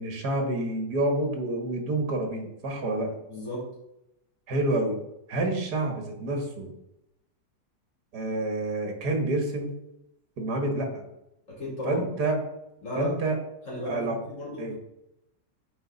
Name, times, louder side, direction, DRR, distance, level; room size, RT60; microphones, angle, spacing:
voice 1, 0.0-3.2 4.5-5.0 5.3-6.7 8.1-9.7 10.4-11.0 11.8-12.4 13.0-13.4 13.9-14.2 14.6-14.8, right 2 dB, 75° right, 3 dB, 2.1 m, -28 dB
voice 2, 3.3-3.7 11.5-12.1 12.8-13.1 13.7-14.8, left 1 dB, 50° left, -5 dB, 3.6 m, -34 dB
9.4 x 4.6 x 4.1 m, 0.85 s
omnidirectional pair, 1.8 m